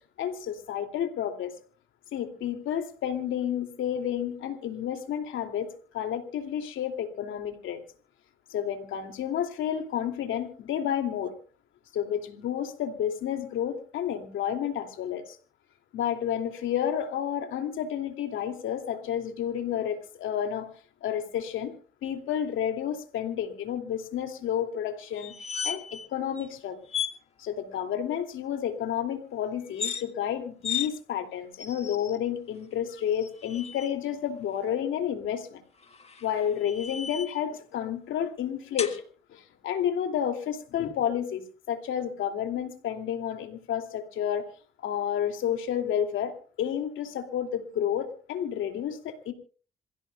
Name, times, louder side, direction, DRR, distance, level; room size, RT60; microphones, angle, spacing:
voice 1, 0.2-1.5 2.1-5.7 5.9-7.8 8.5-11.3 11.9-15.4 15.9-20.7 21.0-21.7 22.0-25.3 25.6-26.8 27.4-35.6 36.2-39.0 39.3-44.4 44.8-49.3, left 9 dB, 80° left, 2.7 m, -30 dB
sound 1, 25.2-26.1 26.4-26.5 26.9-27.2 29.6-30.0 30.6-30.9 31.6-32.2 33.1-33.9 35.8-37.4 38.8-39.0, left 7 dB, 30° left, 1.8 m, -35 dB
27.5 x 16.0 x 2.3 m
cardioid pair, 90°, 20 cm